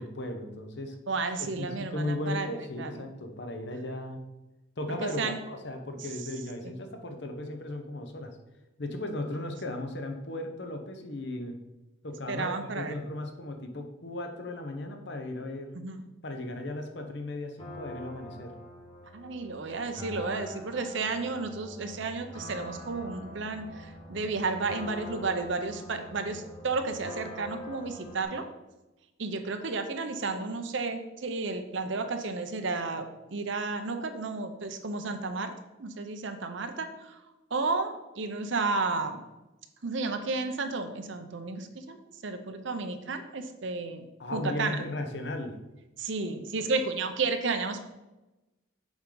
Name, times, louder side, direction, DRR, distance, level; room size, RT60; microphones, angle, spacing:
voice 1, 0.0-1.0 1.4-4.2 4.8-8.4 8.8-11.6 12.0-15.8 16.2-18.5 44.2-45.6, left 1 dB, 55° left, 5 dB, 0.8 m, -36 dB
voice 2, 1.1-2.5 2.8-3.1 5.2-5.4 12.3-12.9 15.8-16.0 19.1-28.5 29.2-33.1 33.3-35.5 35.8-37.2 37.5-39.2 39.8-42.0 42.2-44.1 44.3-44.8 46.0-47.8, right 3 dB, 65° right, 7 dB, 0.7 m, -32 dB
sound 1, 17.6-28.2, left 1 dB, 25° left, 1.2 m, -45 dB
7.2 x 4.9 x 3.9 m, 1.0 s
head